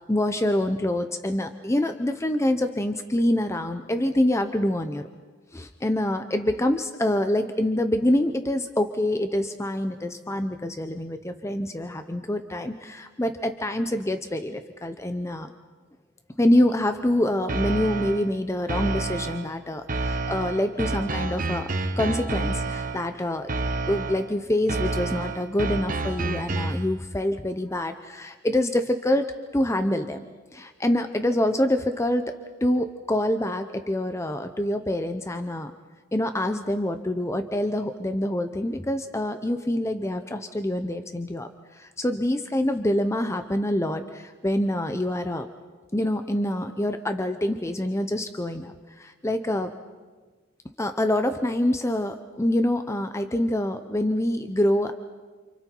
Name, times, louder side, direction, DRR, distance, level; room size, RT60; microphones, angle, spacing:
voice 1, 0.1-5.1 5.5-15.5 16.4-23.5 23.9-29.3 29.5-30.2 30.5-32.3 32.6-35.7 36.1-45.5 45.9-49.7 50.8-54.9, left 1 dB, 15° left, 7 dB, 0.8 m, -26 dB
sound 1, 17.5-18.3 18.7-19.5 19.9-23.1 23.5-24.3 24.7-26.9, right 2 dB, 45° right, 1.3 m, -29 dB
29.5 x 28.0 x 4.6 m, 1.4 s
head